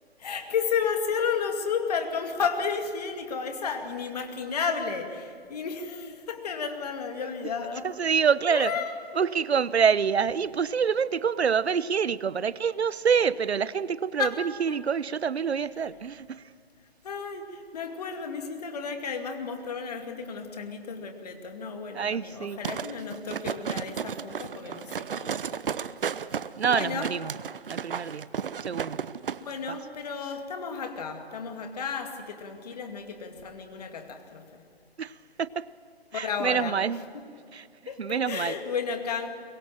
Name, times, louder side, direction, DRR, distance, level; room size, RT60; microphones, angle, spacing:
voice 1, 0.2-7.9 8.5-8.9 9.4-9.5 10.3-10.5 14.2-14.4 14.7-14.8 17.0-25.6 26.7-27.1 29.4-34.6 36.1-36.8 37.9-39.3, left 6 dB, 40° left, 2.4 m, -32 dB
voice 2, 7.8-8.7 9.1-16.4 21.9-22.6 26.6-27.3 27.7-28.3 28.6-29.1 35.0-35.7 36.1-37.0 37.5-37.7 38.0-38.5, right 6 dB, 85° right, 0.8 m, -26 dB
sound 1, 22.6-29.4 29.7-29.8, right 7 dB, 60° right, 0.8 m, -33 dB
24.0 x 21.5 x 7.4 m
hypercardioid pair, 165°, 31 cm